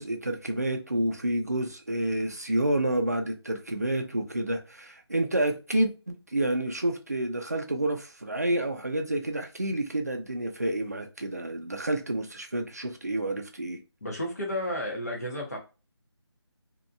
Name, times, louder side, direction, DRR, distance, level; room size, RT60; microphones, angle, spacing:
voice 1, 0.0-13.8, right 1 dB, 35° right, 0.4 m, -29 dB
voice 2, 14.0-15.6, left 1 dB, 35° left, 0.8 m, -32 dB
2.6 x 2.1 x 2.4 m
figure-of-eight pair, 180°, 14 cm